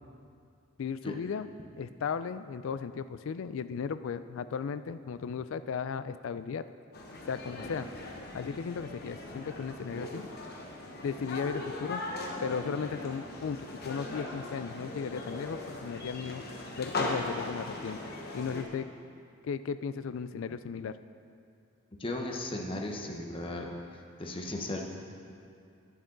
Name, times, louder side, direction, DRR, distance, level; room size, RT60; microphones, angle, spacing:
voice 1, 0.8-1.5 1.8-6.6 7.3-7.9 8.3-10.2 11.0-12.0 12.4-13.6 13.8-16.4 16.8-18.0 18.3-18.9 19.4-20.9, left 6 dB, 65° left, 13 dB, 0.3 m, -35 dB
sound 1, 6.9-18.6, left 2 dB, 50° left, 1.1 m, -39 dB
voice 2, 22.0-23.7 24.2-24.8, left 1 dB, 25° left, 1 dB, 0.9 m, -36 dB
11.0 x 9.5 x 3.9 m, 2.4 s
head